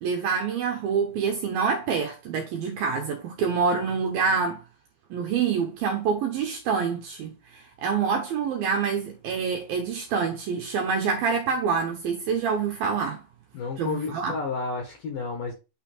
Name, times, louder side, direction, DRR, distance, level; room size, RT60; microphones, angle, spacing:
voice 1, 0.0-4.6 5.1-13.2 13.8-14.3, right 5 dB, 75° right, 2.3 m, -26 dB
voice 2, 13.5-15.5, left 4 dB, 60° left, 2.5 m, -31 dB
9.0 x 3.9 x 4.3 m
omnidirectional pair, 5.4 m